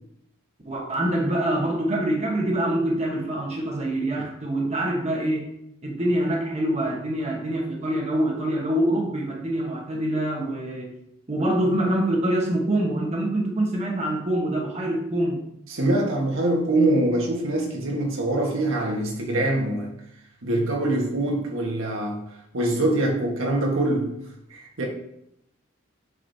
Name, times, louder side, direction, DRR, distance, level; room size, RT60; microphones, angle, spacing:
voice 1, 0.6-5.5 5.8-11.0 11.3-15.4, right 1 dB, 30° right, 1.1 m, -25 dB
voice 2, 15.7-19.9 20.4-22.2 22.5-24.2 24.5-24.9, right 1 dB, 80° right, 1.4 m, -24 dB
7.6 x 5.0 x 2.7 m
head